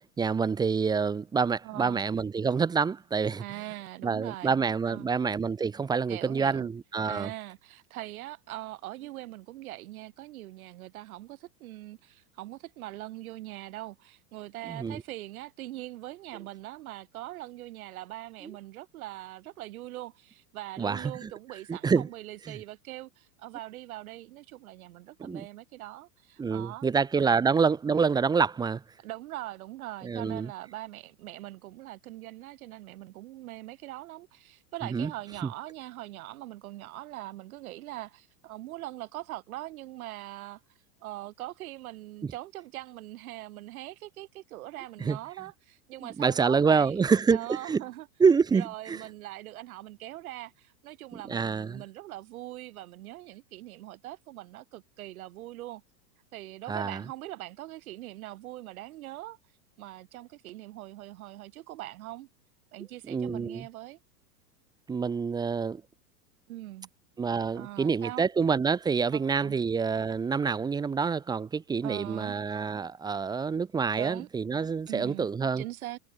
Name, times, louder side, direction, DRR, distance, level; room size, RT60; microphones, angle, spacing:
voice 1, 0.2-3.4 4.0-7.3 14.7-15.0 20.8-21.3 21.7-22.1 22.5-22.6 25.2-25.5 26.4-28.8 30.0-30.5 34.9-35.1 42.2-42.3 45.0-45.2 46.0-47.8 48.2-49.0 51.2-51.8 56.7-57.0 63.1-63.7 64.9-65.8 67.2-75.6, right 5 dB, 10° right, 1.3 m, -27 dB
voice 2, 1.6-2.0 3.4-4.6 4.8-5.1 6.1-6.7 7.0-26.9 27.2-27.3 29.0-40.6 41.0-47.0 47.3-48.1 48.5-55.8 56.3-59.4 59.8-62.3 62.7-64.0 66.5-66.9 67.5-68.3 69.1-69.6 71.8-72.4 73.9-74.3 74.9-75.3 75.6-76.0, right 16 dB, 55° right, 6.5 m, -42 dB
supercardioid pair, 165°, 49 cm